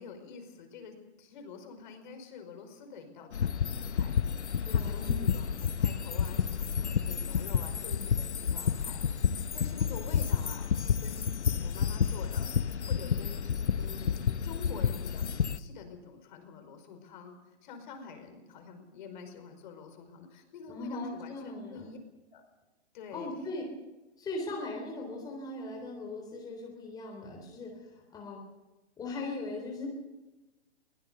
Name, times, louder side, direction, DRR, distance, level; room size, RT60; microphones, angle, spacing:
voice 1, 0.0-22.0 22.3-22.4 22.9-23.3, left 5 dB, 45° left, 6 dB, 5.0 m, -48 dB
sound 1, 3.3-15.6, left 7 dB, 85° left, 1.0 m, -30 dB
voice 2, 4.6-5.2 20.7-21.9 23.1-23.6 24.2-28.4 29.0-29.9, left 2 dB, 10° left, 0 dB, 3.8 m, -39 dB
22.5 x 18.0 x 6.9 m, 1.1 s
hypercardioid pair, 140°, 33 cm